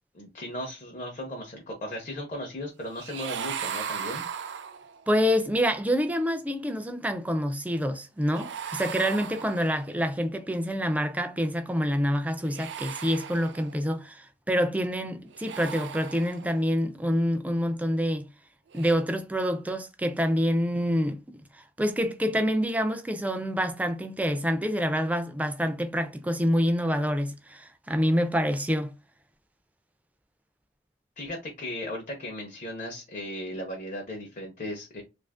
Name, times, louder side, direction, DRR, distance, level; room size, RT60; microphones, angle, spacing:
voice 1, 0.1-4.2 31.2-35.0, left 1 dB, 45° left, 0.7 m, -36 dB
sound 1, 2.9-5.1 8.3-10.0 12.4-13.9 15.3-16.7 18.7-18.9, right 7 dB, 85° right, 0.4 m, -37 dB
voice 2, 5.1-18.2 18.7-28.9, equal, 10° right, 0.3 m, -27 dB
2.7 x 2.5 x 3.4 m
head